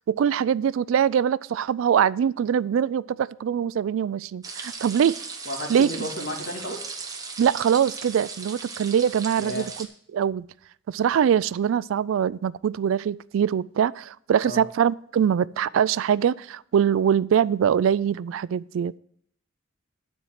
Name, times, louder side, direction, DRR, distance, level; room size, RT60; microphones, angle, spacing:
voice 1, 0.1-5.2 5.7-6.1 7.4-9.9 10.1-10.5 10.9-18.9, right 8 dB, 80° right, 19 dB, 0.3 m, -23 dB
sound 1, 4.4-9.9, right 4 dB, 20° right, 0.9 m, -37 dB
voice 2, 5.5-6.9 9.4-9.7 14.4-14.6, equal, 70° left, 0 dB, 2.4 m, -33 dB
9.5 x 4.6 x 7.4 m, 0.65 s
head